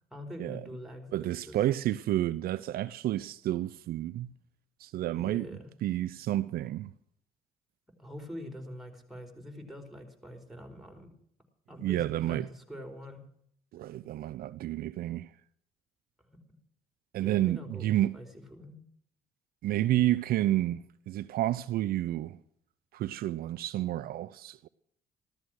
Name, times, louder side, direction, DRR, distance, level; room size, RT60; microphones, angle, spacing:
voice 1, 0.1-1.6 5.1-5.7 8.0-11.2 11.7-13.2 17.2-17.9 18.1-18.8, equal, ahead, 4.5 m, -44 dB
voice 2, 1.1-4.3 4.8-5.5 5.8-6.9 11.8-12.5 13.7-15.3 17.1-18.2 19.6-22.4 22.9-24.7, right 14 dB, 70° right, 0.5 m, -30 dB
14.5 x 13.5 x 6.3 m
supercardioid pair, 60°, 16 cm